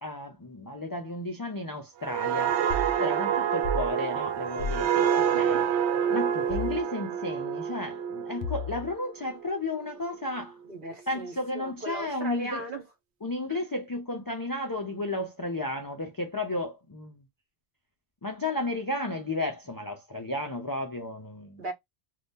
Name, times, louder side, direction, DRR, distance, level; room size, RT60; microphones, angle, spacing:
voice 1, 0.0-5.6 6.1-10.6 11.1-12.7 13.2-17.2 18.2-21.6, left 2 dB, 35° left, 0.3 m, -33 dB
sound 1, 2.0-9.5 9.9-10.2, right 8 dB, 80° right, 0.8 m, -27 dB
sound 2, 2.7-2.9 3.6-3.9 4.6-4.9 6.5-6.8 8.4-8.9, left 2 dB, 65° left, 0.8 m, -32 dB
voice 2, 10.7-12.8 13.5-13.6 21.6-21.7, right 1 dB, 50° right, 1.2 m, -37 dB
2.6 x 2.2 x 3.5 m
omnidirectional pair, 1.1 m